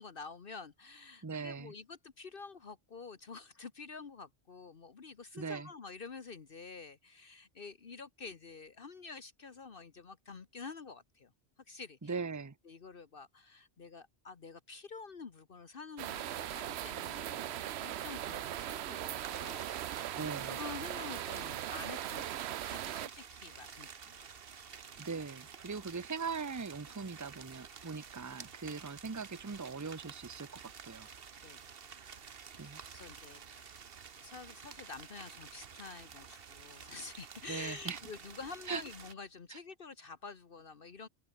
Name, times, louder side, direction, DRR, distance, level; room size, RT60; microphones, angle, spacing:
voice 1, 0.0-11.3 11.7-12.1 12.6-24.2 28.6-28.7 31.4-31.8 32.1-32.2 32.5-33.9 34.2-41.1, left 4 dB, 55° left, 1.4 m, -49 dB
voice 2, 1.2-1.7 5.3-5.7 12.0-12.6 20.1-20.6 25.0-31.1 32.6-32.8 37.5-38.0 38.7-38.8 39.5-39.6, right 5 dB, 20° right, 0.8 m, -40 dB
sound 1, 16.0-23.1, right 12 dB, 80° right, 0.9 m, -39 dB
sound 2, 19.2-39.1, right 6 dB, 65° right, 1.3 m, -51 dB
open air
omnidirectional pair, 1.1 m